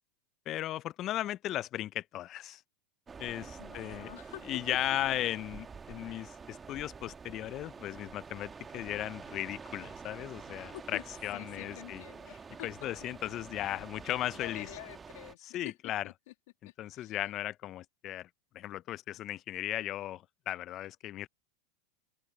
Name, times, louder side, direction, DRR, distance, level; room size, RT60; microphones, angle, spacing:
voice 1, 0.5-2.6 3.2-4.1 4.5-12.0 12.6-14.7 15.4-16.0 16.8-18.3 18.5-21.3, left 13 dB, 45° left, 0.6 m, -36 dB
sound 1, 3.1-15.4, right 5 dB, 20° right, 2.0 m, -48 dB
voice 2, 3.4-4.5 10.7-11.0 11.3-12.9 14.3-16.3 16.6-17.2, left 19 dB, 65° left, 2.3 m, -48 dB
open air
hypercardioid pair, 95°, 0 cm